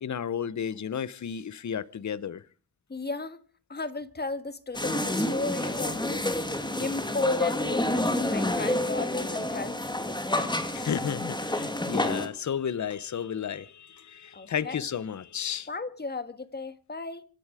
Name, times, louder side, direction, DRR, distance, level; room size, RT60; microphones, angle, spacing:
voice 1, 0.0-2.4 10.7-15.7, left 8 dB, 50° left, 1.0 m, -33 dB
voice 2, 2.9-3.4 3.7-6.2 6.5-10.2 14.3-14.9 15.7-17.2, left 3 dB, 25° left, 1.5 m, -35 dB
sound 1, 4.7-12.3, left 1 dB, 10° left, 2.5 m, -29 dB
26.0 x 11.0 x 5.0 m
cardioid pair, 95°, 36 cm